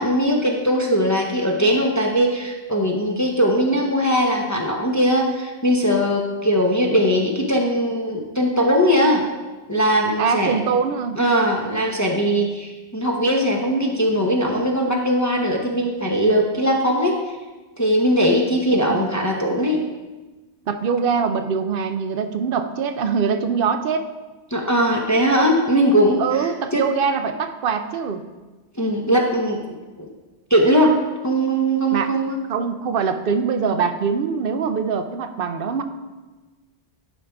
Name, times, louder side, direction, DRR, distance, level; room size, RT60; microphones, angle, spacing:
voice 1, 0.0-9.2 9.7-10.6 11.2-17.2 17.8-19.8 24.5-26.2 26.7-26.8 28.8-29.6 30.0-30.1 30.5-31.0 31.2-32.4, equal, 20° left, -1 dB, 0.6 m, -20 dB
voice 2, 10.2-11.2 18.7-19.0 20.7-24.1 26.2-28.2 31.9-32.1 32.5-35.8, right 6 dB, 60° right, 9 dB, 0.7 m, -23 dB
11.0 x 5.1 x 3.4 m, 1.2 s
omnidirectional pair, 1.2 m